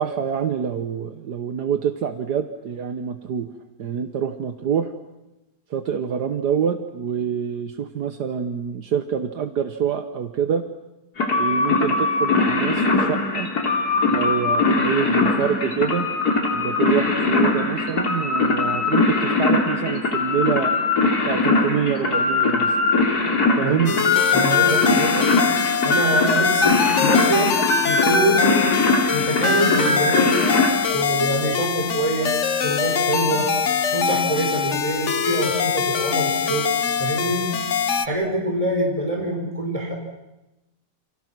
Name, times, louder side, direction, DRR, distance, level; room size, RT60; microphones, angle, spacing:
voice 1, 0.0-3.5 3.8-4.9 5.7-10.6 11.4-13.5 14.1-16.1 16.5-20.7 21.3-22.7 23.6-23.9, right 8 dB, 70° right, 8 dB, 1.7 m, -26 dB
sound 1, 11.2-30.7, left 3 dB, 65° left, 3.7 m, -21 dB
voice 2, 23.6-25.3 25.8-27.5 27.8-28.7 29.1-33.5 33.9-37.5 38.0-39.9, right 1 dB, 20° right, 0 dB, 5.8 m, -25 dB
sound 2, 23.9-38.1, left 7 dB, 50° left, 1.3 m, -23 dB
29.5 x 28.5 x 6.1 m, 0.97 s
omnidirectional pair, 1.8 m